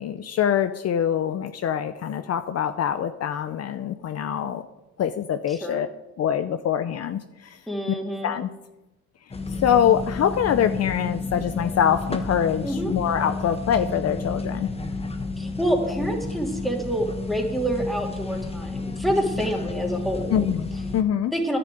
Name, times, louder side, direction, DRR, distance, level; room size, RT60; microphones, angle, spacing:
voice 1, 0.0-4.6 5.0-5.9 6.2-7.6 8.2-8.5 9.6-14.7 20.3-21.3, left 9 dB, 55° left, 10 dB, 0.7 m, -24 dB
voice 2, 5.5-5.8 7.7-8.3 12.6-12.9 15.4-20.5 21.3-21.6, equal, ahead, 0 dB, 2.8 m, -27 dB
sound 1, 9.3-21.0, left 3 dB, 20° left, 1.2 m, -31 dB
10.0 x 7.0 x 9.2 m, 0.98 s
cardioid pair, 90°, 30 cm